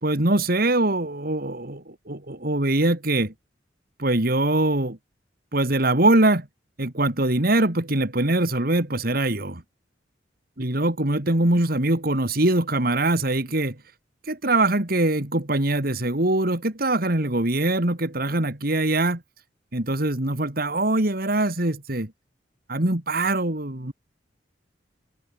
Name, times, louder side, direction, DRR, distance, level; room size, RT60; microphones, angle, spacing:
voice 1, 0.0-3.3 4.0-5.0 5.5-6.5 6.8-9.6 10.6-13.8 14.2-19.2 19.7-22.1 22.7-23.9, right 2 dB, 55° right, 2.5 m, -23 dB
head